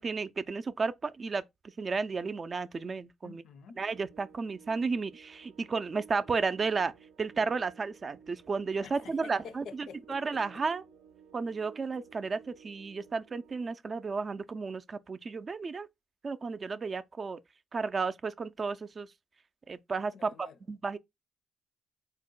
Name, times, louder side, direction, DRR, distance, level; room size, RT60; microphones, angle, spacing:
voice 1, 0.0-1.4 1.8-3.4 3.8-6.9 7.2-10.8 11.3-15.9 16.2-17.4 17.7-19.1 19.7-20.3 20.7-21.0, right 4 dB, 35° right, 0.4 m, -33 dB
voice 2, 3.2-3.8 8.8-10.4 20.1-20.6, left 6 dB, 70° left, 0.5 m, -49 dB
sound 1, 3.8-13.7, right 6 dB, 85° right, 0.6 m, -56 dB
3.9 x 2.1 x 3.7 m
cardioid pair, 90°, 0 cm